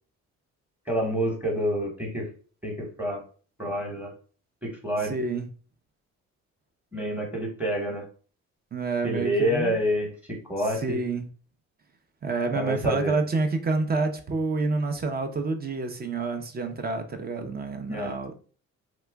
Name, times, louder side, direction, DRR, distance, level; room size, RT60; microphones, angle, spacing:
voice 1, 0.9-2.3 2.6-3.2 3.6-4.1 4.6-5.2 6.9-8.1 9.0-11.0 12.5-13.1 17.9-18.1, equal, 5° right, 1.0 m, -28 dB
voice 2, 5.0-5.5 8.7-9.8 10.6-11.3 12.2-18.3, right 3 dB, 30° right, 0.6 m, -28 dB
2.9 x 2.3 x 3.4 m
cardioid pair, 90°, 30 cm